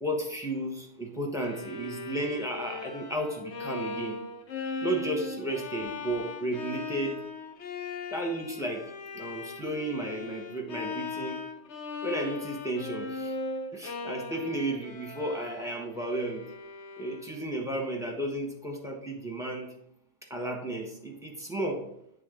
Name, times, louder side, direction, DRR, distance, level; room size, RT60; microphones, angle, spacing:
voice 1, 0.0-4.2 4.8-7.2 8.1-11.4 12.0-13.3 13.7-16.5 17.0-19.7 20.3-21.9, right 1 dB, 5° right, 0 dB, 1.1 m, -33 dB
Bowed string instrument, 1.4-17.5, left 3 dB, 90° left, 1.1 m, -39 dB
8.8 x 3.5 x 3.8 m, 0.73 s
omnidirectional pair, 1.1 m